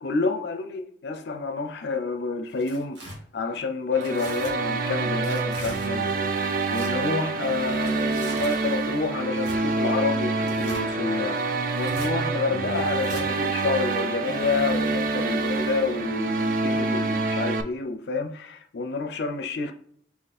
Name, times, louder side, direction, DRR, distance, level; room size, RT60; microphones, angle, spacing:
voice 1, 0.0-3.0 3.3-11.4 11.8-19.7, left 4 dB, 65° left, 0.4 m, -29 dB
Tearing, 2.5-3.2 4.0-4.5 5.2-5.9 6.6-6.9 7.7-8.6 9.4-9.6 10.4-10.9 11.7-12.1 13.0-13.3, right 1 dB, 80° right, 1.6 m, -41 dB
sound 1, 3.9-17.6, right 3 dB, 45° right, 0.3 m, -27 dB
4.1 x 2.8 x 4.0 m
head